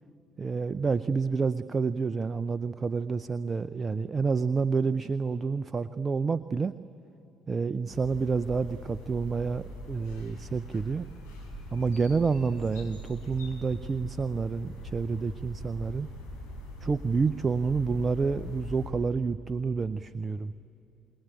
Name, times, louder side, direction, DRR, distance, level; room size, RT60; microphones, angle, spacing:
voice 1, 0.4-6.7 7.5-11.1 11.7-16.1 16.8-20.5, right 4 dB, 35° right, 15 dB, 0.6 m, -29 dB
sound 1, 7.9-18.9, left 1 dB, 85° left, 5.0 m, -42 dB
28.0 x 21.0 x 9.0 m, 2.9 s
hypercardioid pair, 55°, 0 cm